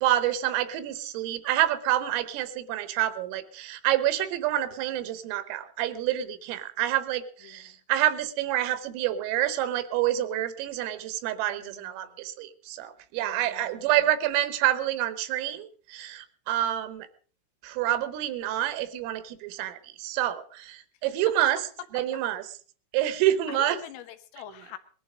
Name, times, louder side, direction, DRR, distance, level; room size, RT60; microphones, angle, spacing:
voice 1, 0.0-17.1 17.6-21.6 21.9-22.5 22.9-23.8, right 13 dB, 80° right, 13 dB, 3.7 m, -27 dB
voice 2, 11.5-12.1 13.2-13.8 22.0-22.1 23.5-24.8, left 13 dB, 80° left, 8 dB, 3.6 m, -44 dB
20.0 x 11.5 x 5.0 m, 0.42 s
omnidirectional pair, 5.9 m